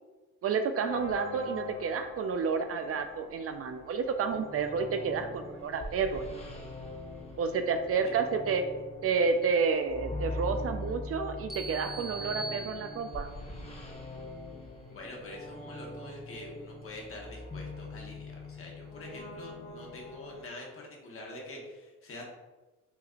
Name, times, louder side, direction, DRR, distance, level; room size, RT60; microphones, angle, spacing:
voice 1, 0.4-6.3 7.4-8.6 9.0-13.3, right 5 dB, 50° right, 7 dB, 0.4 m, -30 dB
sound 1, 0.8-20.5, left 2 dB, 20° left, 0.9 m, -42 dB
sound 2, 11.5-13.4, right 2 dB, ahead, 0.5 m, -41 dB
voice 2, 14.9-22.3, left 2 dB, 45° left, -1 dB, 1.2 m, -45 dB
5.8 x 2.5 x 2.5 m, 1.2 s
cardioid pair, 90°, 30 cm